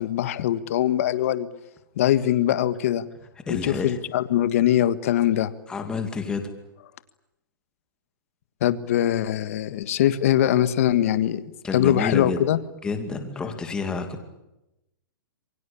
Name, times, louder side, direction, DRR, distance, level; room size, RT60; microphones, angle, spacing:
voice 1, 0.0-1.5 2.0-3.1 3.5-5.5 8.6-11.4 11.7-12.6, left 12 dB, 40° left, 13 dB, 1.6 m, -22 dB
voice 2, 3.5-4.0 5.7-6.5 11.6-12.4 12.8-14.2, left 4 dB, 5° left, 6 dB, 2.5 m, -29 dB
27.5 x 23.5 x 8.7 m, 0.91 s
hypercardioid pair, 170°, 12 cm